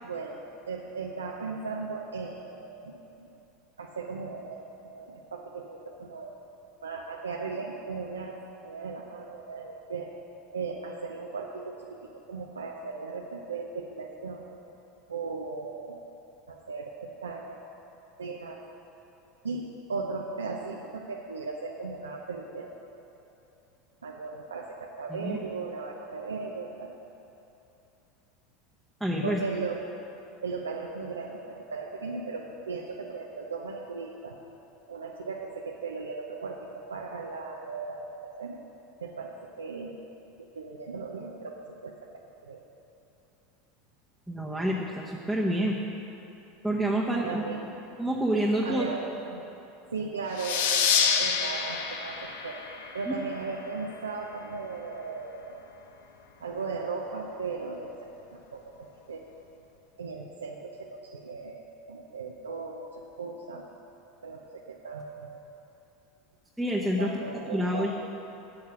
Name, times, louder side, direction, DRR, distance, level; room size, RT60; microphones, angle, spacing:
voice 1, 0.0-3.3 3.8-6.3 6.8-8.4 8.6-10.1 10.5-12.0 12.3-14.6 15.1-16.0 16.5-17.6 18.2-18.6 19.4-22.7 24.0-26.9 29.2-29.8 30.4-34.4 34.9-38.6 39.0-40.0 40.4-41.9 42.4-42.6 47.2-47.7 48.6-49.4 49.9-52.6 52.9-55.6 56.4-59.2 60.0-61.6 61.9-63.7 64.2-65.4 67.0-67.9, right 4 dB, 90° right, -1 dB, 0.6 m, -37 dB
voice 2, 29.0-29.4 44.3-45.8 46.6-47.4 48.0-48.9 53.1-53.2 66.6-67.1 67.5-67.9, right 1 dB, ahead, -4 dB, 1.1 m, -27 dB
sound 1, 50.4-53.6, left 7 dB, 70° left, 0.8 m, -28 dB
8.7 x 8.5 x 6.2 m, 2.9 s
hypercardioid pair, 85°, 0 cm